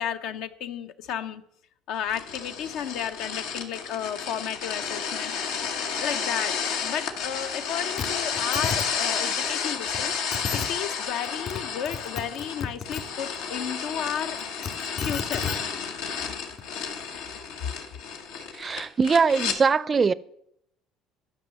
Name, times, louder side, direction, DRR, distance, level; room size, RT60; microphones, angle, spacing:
voice 1, 0.0-1.4 1.9-5.3 6.0-10.1 10.5-14.5 15.0-15.5, left 9 dB, 70° left, 0.7 m, -33 dB
sound 1, 2.1-19.6, left 6 dB, 85° left, 1.3 m, -31 dB
sound 2, 8.0-8.1 8.3-8.8 9.9-10.0 10.3-10.7 11.3-11.6 11.9-13.0 14.4-15.6 16.6-16.7, left 6 dB, 50° left, 1.9 m, -31 dB
voice 2, 18.6-20.1, right 5 dB, 30° right, 0.5 m, -22 dB
11.5 x 5.5 x 7.4 m
supercardioid pair, 100°, 0 cm